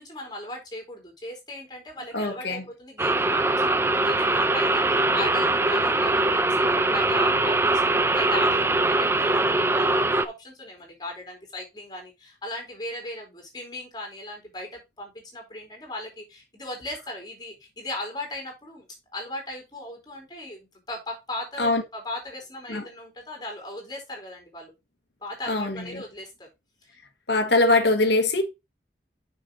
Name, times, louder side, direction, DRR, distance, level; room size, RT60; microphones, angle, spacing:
voice 1, 0.0-18.9 19.1-24.7 25.2-26.5 26.8-27.0, left 1 dB, 25° left, 4.1 m, -38 dB
voice 2, 2.1-2.6 21.6-21.8 22.7-22.9 25.5-26.0 27.3-28.4, left 2 dB, 75° left, 1.5 m, -22 dB
sound 1, 3.0-10.3, right 2 dB, 15° right, 0.5 m, -22 dB
7.1 x 6.3 x 3.9 m
head